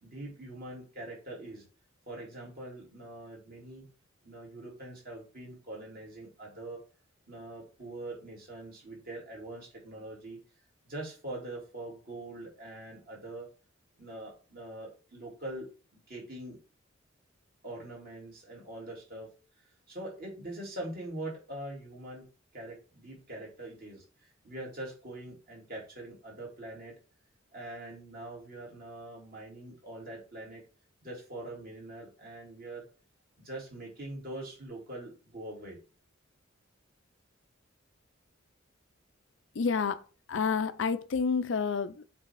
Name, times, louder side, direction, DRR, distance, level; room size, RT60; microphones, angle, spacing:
voice 1, 0.0-1.6 2.1-3.8 4.2-6.8 7.3-10.4 10.9-13.5 14.0-15.7 15.9-16.6 17.6-19.3 19.9-22.3 22.5-26.9 27.5-30.6 31.0-32.9 33.4-35.8, right 1 dB, 50° right, 2.9 m, -43 dB
voice 2, 39.5-40.0 40.3-42.0, left 5 dB, 65° left, 0.5 m, -29 dB
7.5 x 3.5 x 4.7 m
head